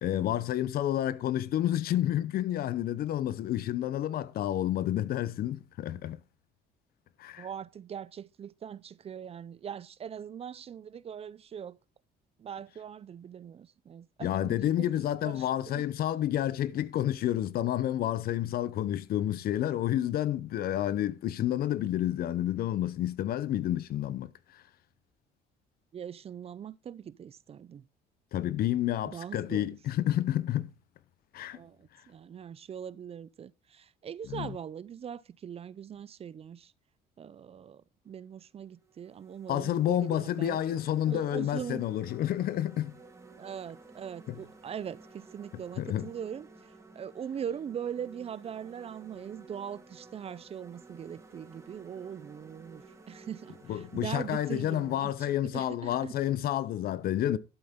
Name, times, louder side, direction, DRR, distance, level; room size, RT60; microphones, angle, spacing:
voice 1, 0.0-6.2 7.2-7.5 14.2-24.6 28.3-30.7 31.3-31.6 34.3-34.6 39.5-42.9 44.3-44.4 45.8-46.1 53.7-57.4, left 12 dB, 60° left, 0.7 m, -30 dB
voice 2, 7.4-11.8 12.4-14.9 15.2-15.5 15.7-15.9 25.9-27.9 29.1-29.7 31.5-36.7 37.2-40.6 41.1-41.8 43.4-46.5 46.9-56.1, right 8 dB, 35° right, 0.5 m, -41 dB
sound 1, 38.0-38.2 38.8-55.0, right 3 dB, 15° right, 3.5 m, -54 dB
12.0 x 8.0 x 3.7 m
cardioid pair, 110°, 17 cm